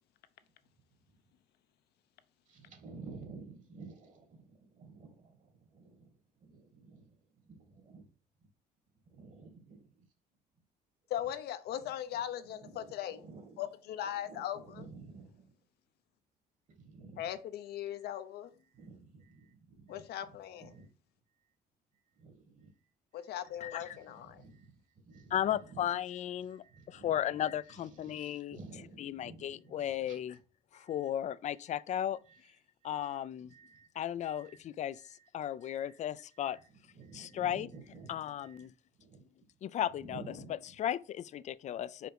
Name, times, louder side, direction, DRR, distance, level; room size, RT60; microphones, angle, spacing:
voice 1, 2.5-8.1 8.4-8.5 9.1-10.1 11.2-11.3 11.7-15.6 16.7-17.3 17.9-18.2 18.6-20.9 21.3-21.6 21.9-30.4 30.7-31.1 31.7-31.8 32.1-33.9 34.2-34.6 34.9-35.3 35.6-36.0 36.3-39.3 40.0-40.8, right 4 dB, 50° right, 2.0 m, -54 dB
voice 2, 11.1-13.2 13.6-14.6 17.2-18.5 19.9-20.7 23.1-24.4, left 11 dB, 70° left, 0.8 m, -39 dB
voice 3, 23.6-24.0 25.3-28.6 29.0-30.4 30.7-32.2 32.8-33.5 34.0-36.6 37.1-37.7 38.1-38.7 39.6-40.2 40.8-42.1, left 11 dB, 45° left, 0.4 m, -35 dB
5.0 x 5.0 x 4.7 m
cardioid pair, 110°, 17 cm